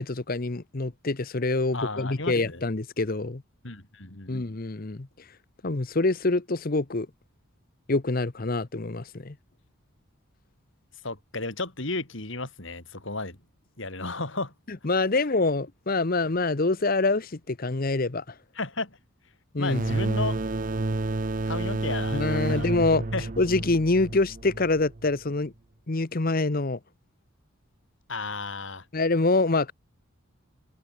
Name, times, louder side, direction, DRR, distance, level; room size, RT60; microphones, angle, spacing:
voice 1, 0.0-3.4 4.3-5.1 5.6-7.1 7.9-9.3 14.7-18.2 19.5-19.8 22.1-23.0 23.4-25.5 25.9-26.8 28.9-29.7, left 3 dB, 40° left, 0.9 m, -25 dB
voice 2, 1.7-2.6 3.6-4.4 11.0-13.4 13.8-14.5 18.6-19.0 19.6-20.4 21.5-22.7 23.1-23.3 28.1-28.9, left 3 dB, 60° left, 3.6 m, -33 dB
sound 1, 19.7-25.1, right 2 dB, 40° right, 0.7 m, -30 dB
open air
head